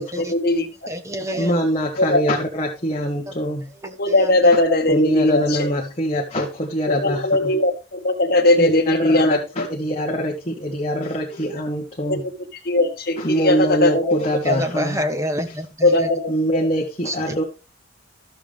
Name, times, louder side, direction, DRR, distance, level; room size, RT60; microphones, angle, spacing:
voice 1, 0.0-0.9 2.0-2.2 4.0-5.7 7.0-9.7 11.4-11.6 12.1-12.2 12.7-14.2 15.8-16.7, left 2 dB, 50° left, 4 dB, 1.9 m, -19 dB
voice 2, 0.9-1.6 3.3-3.4 3.8-4.4 14.4-16.1 17.0-17.4, equal, 15° right, 7 dB, 1.3 m, -27 dB
voice 3, 1.4-3.7 4.9-7.6 8.6-12.3 13.2-15.0 16.3-17.4, equal, 30° left, 1 dB, 1.4 m, -23 dB
13.0 x 7.1 x 3.4 m, 0.30 s
head